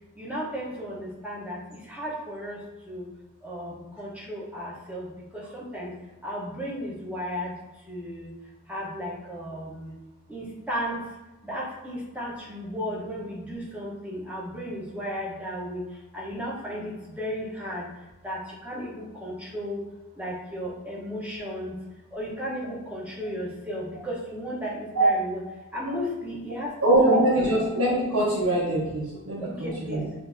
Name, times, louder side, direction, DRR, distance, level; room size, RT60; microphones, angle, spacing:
voice 1, 0.2-2.6 2.9-3.1 3.4-5.9 6.2-7.5 7.9-8.3 8.7-9.9 10.3-11.0 11.4-15.8 16.1-17.9 18.2-19.8 20.2-21.7 22.1-25.4 25.7-26.7 27.0-27.5 29.4-30.1, equal, 5° right, -5 dB, 1.0 m, -34 dB
voice 2, 26.8-30.0, right 1 dB, 80° right, -7 dB, 1.1 m, -23 dB
6.8 x 2.7 x 2.7 m, 1.1 s
head